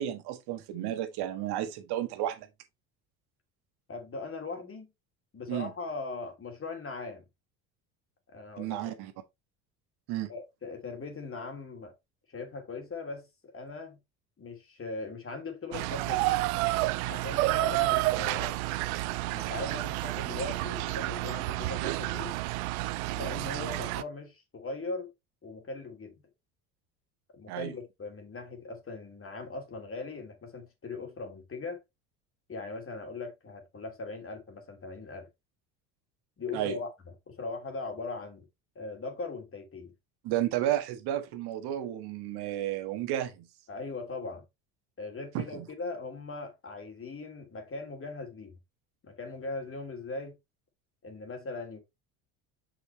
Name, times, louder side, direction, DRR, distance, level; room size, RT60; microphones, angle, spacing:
voice 1, 0.0-2.5 5.5-5.7 8.6-9.1 10.1-10.3 27.5-27.7 36.5-36.8 40.2-43.5 45.3-45.6, right 12 dB, 65° right, 1.5 m, -32 dB
voice 2, 3.9-4.9 5.3-7.2 8.3-8.8 10.3-11.9 12.3-14.0 14.4-16.3 17.0-18.6 19.3-22.3 23.1-25.1 25.4-26.1 27.3-31.8 32.5-35.3 36.4-36.9 37.3-38.5 38.7-39.9 43.7-44.4 45.0-48.5 49.0-50.3 51.0-51.8, left 3 dB, 30° left, 2.7 m, -39 dB
sound 1, 15.7-24.0, right 19 dB, 80° right, 0.6 m, -30 dB
5.9 x 5.7 x 3.1 m
hypercardioid pair, 70°, 42 cm